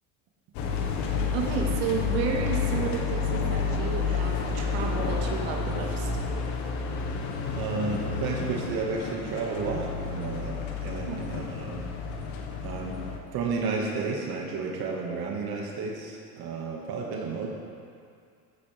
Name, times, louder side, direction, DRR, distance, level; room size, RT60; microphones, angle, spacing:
sound 1, 0.5-13.2, left 5 dB, 65° left, 1.8 m, -30 dB
voice 1, 1.3-6.1 11.1-11.2, right 6 dB, 75° right, 1 dB, 2.2 m, -32 dB
voice 2, 7.5-11.8 12.6-13.0 13.3-17.5, right 4 dB, 55° right, -1 dB, 2.2 m, -32 dB
15.0 x 14.5 x 3.6 m, 2.3 s
supercardioid pair, 115°, 44 cm